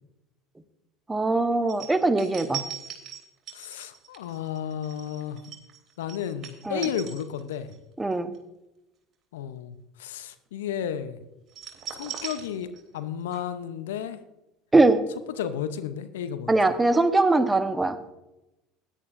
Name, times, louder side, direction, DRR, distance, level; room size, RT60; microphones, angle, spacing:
voice 1, 1.1-2.6 6.6-6.9 8.0-8.3 14.7-15.0 16.5-18.1, right 2 dB, 15° right, 10 dB, 1.1 m, -21 dB
sound 1, 1.7-7.8 8.1-8.4 11.5-13.1 13.3-13.4, right 9 dB, 40° right, 3.2 m, -39 dB
voice 2, 3.5-5.4 6.0-7.7 9.3-11.2 11.9-14.2 15.3-16.5, left 9 dB, 75° left, 11 dB, 0.8 m, -33 dB
16.5 x 11.0 x 2.6 m, 0.92 s
hypercardioid pair, 70°, 0 cm